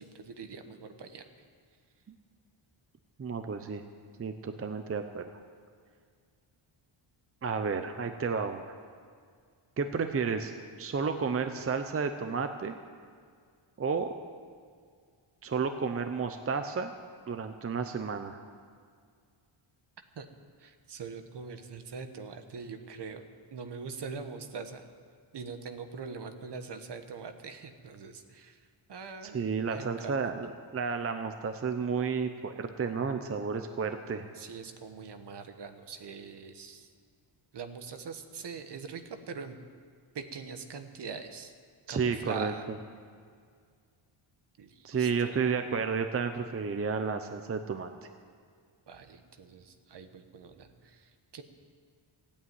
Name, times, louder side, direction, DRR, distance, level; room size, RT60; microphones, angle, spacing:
voice 1, 0.0-1.4 20.2-20.3 20.6-24.9 25.3-30.1 34.3-36.9 37.5-39.6 40.1-41.5 41.9-42.7 44.6-45.4 48.9-51.4, right 5 dB, 55° right, 8 dB, 1.2 m, -43 dB
voice 2, 3.2-3.8 4.2-5.2 7.4-8.6 9.8-10.5 10.8-12.8 13.8-14.1 15.4-16.9 17.3-18.4 29.3-34.3 41.9-42.5 44.8-47.9, right 5 dB, 30° right, 7 dB, 0.6 m, -31 dB
16.0 x 8.7 x 9.4 m, 2.1 s
wide cardioid pair, 155°, 50 cm